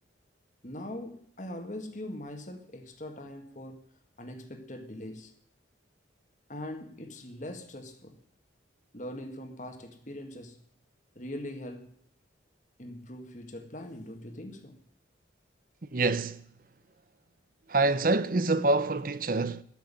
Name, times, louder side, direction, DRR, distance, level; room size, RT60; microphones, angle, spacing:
voice 1, 0.6-3.8 4.2-5.3 6.5-8.2 8.9-10.6 11.2-11.9 12.8-14.8, left 1 dB, 40° left, 1.9 m, -41 dB
voice 2, 15.9-16.4 17.7-19.6, right 2 dB, 45° right, 0.7 m, -26 dB
13.5 x 6.6 x 9.9 m
head